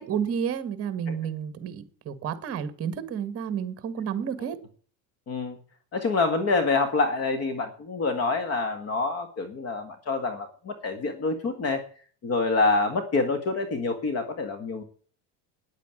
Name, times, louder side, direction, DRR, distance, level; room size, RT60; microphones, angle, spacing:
voice 1, 0.0-4.6, right 8 dB, 35° right, 1.8 m, -31 dB
voice 2, 5.3-5.6 5.9-11.8 12.2-14.8, left 3 dB, 35° left, 1.8 m, -26 dB
10.0 x 9.1 x 9.1 m
cardioid pair, 155°, 41 cm